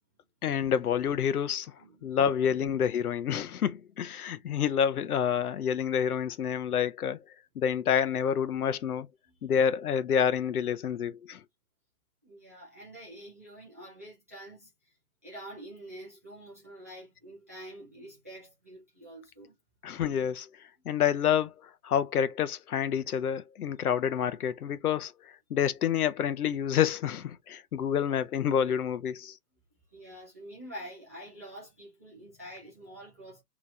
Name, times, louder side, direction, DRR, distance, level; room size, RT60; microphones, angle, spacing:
voice 1, 0.4-1.7 2.0-7.2 7.6-9.1 9.4-11.4 19.8-20.5 20.9-29.4, left 8 dB, 70° left, 0.7 m, -28 dB
voice 2, 1.8-2.2 9.2-9.3 12.2-15.0 15.2-19.5 29.9-33.4, right 1 dB, 10° right, 0.4 m, -47 dB
3.0 x 2.4 x 4.0 m
figure-of-eight pair, 130°, 46 cm